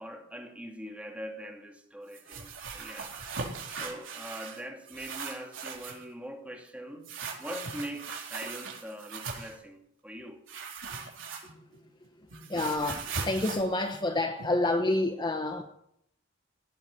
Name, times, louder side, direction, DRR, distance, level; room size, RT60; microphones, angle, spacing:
voice 1, 0.0-3.2 3.8-7.1 7.4-10.4, equal, 5° right, 2.3 m, -42 dB
sound 1, 2.1-4.6 4.9-6.1 7.0-9.6 10.5-11.8 12.0-14.7, right 4 dB, 85° right, 4.3 m, -39 dB
voice 2, 12.2-15.6, left 2 dB, 25° left, 1.1 m, -29 dB
17.5 x 8.2 x 10.0 m
head